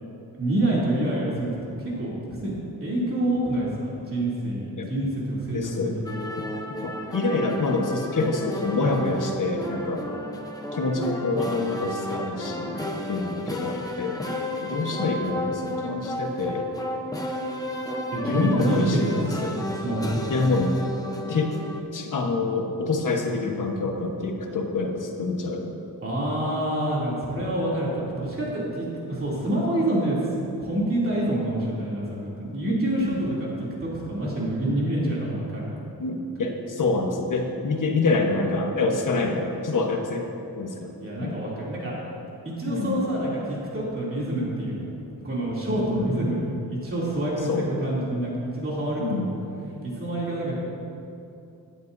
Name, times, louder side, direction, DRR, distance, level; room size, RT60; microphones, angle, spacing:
voice 1, 0.3-2.6 2.8-6.0 18.1-19.5 19.8-20.3 26.0-33.5 33.8-35.6 41.0-41.9 42.4-44.9 45.2-49.3 49.8-50.5, right 1 dB, 35° right, -7 dB, 2.9 m, -27 dB
voice 2, 5.5-5.9 6.8-10.1 10.7-12.8 13.1-14.2 14.6-16.7 18.3-19.5 20.3-20.8 21.3-21.6 21.9-25.8 32.7-33.2 36.0-40.3 40.6-41.4 42.7-43.1 45.8-46.1 47.5-47.7 49.0-49.3, left 3 dB, 55° left, 2 dB, 1.2 m, -26 dB
sound 1, 6.0-21.8, left 1 dB, 10° left, 0.8 m, -32 dB
18.0 x 11.0 x 2.7 m, 2.7 s
wide cardioid pair, 140°, 38 cm